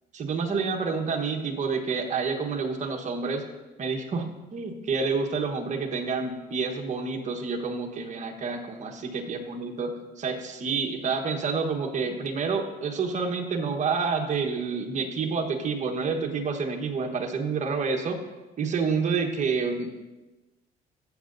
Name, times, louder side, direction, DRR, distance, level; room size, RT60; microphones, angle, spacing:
voice 1, 0.1-3.4 3.8-9.9 10.2-18.2 18.6-20.0, right 5 dB, 45° right, 4 dB, 1.3 m, -28 dB
14.0 x 7.5 x 2.7 m, 1.1 s
cardioid pair, 110°, 17 cm